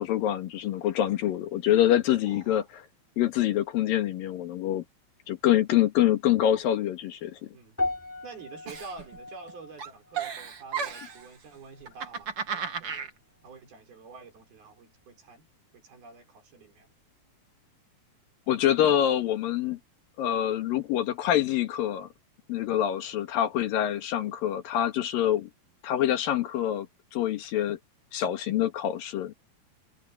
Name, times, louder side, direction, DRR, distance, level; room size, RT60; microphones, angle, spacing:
voice 1, 0.0-2.8 3.2-4.8 5.3-7.5 18.5-19.8 20.2-22.1 22.5-25.5 25.8-26.9 27.1-27.8 28.1-29.3, left 11 dB, 75° left, 3.3 m, -25 dB
voice 2, 2.2-2.6 7.5-7.8 8.2-13.1 13.4-15.5 15.7-16.9, right 4 dB, 85° right, 7.9 m, -48 dB
sound 1, 7.8-12.2 12.4-12.8 13.5-13.6, left 2 dB, 5° left, 4.3 m, -38 dB
Giggle, 8.7-9.5 9.8-11.3 11.8-13.1, right 6 dB, 40° right, 2.8 m, -34 dB
omnidirectional pair, 4.2 m